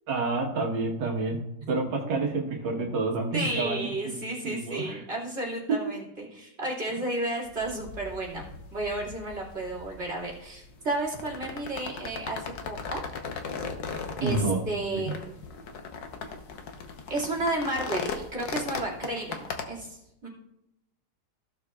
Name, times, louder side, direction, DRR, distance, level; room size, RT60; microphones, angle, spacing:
voice 1, 0.1-4.2 4.4-5.0 5.7-5.8 14.2-14.6 14.9-15.0, right 3 dB, 85° right, 1 dB, 2.0 m, -29 dB
voice 2, 3.3-13.0 14.2-15.4 17.1-20.3, right 2 dB, 40° right, -3 dB, 2.7 m, -32 dB
sound 1, 7.4-19.7, left 5 dB, 80° left, 1.6 m, -38 dB
15.5 x 6.7 x 2.4 m, 0.86 s
omnidirectional pair, 1.9 m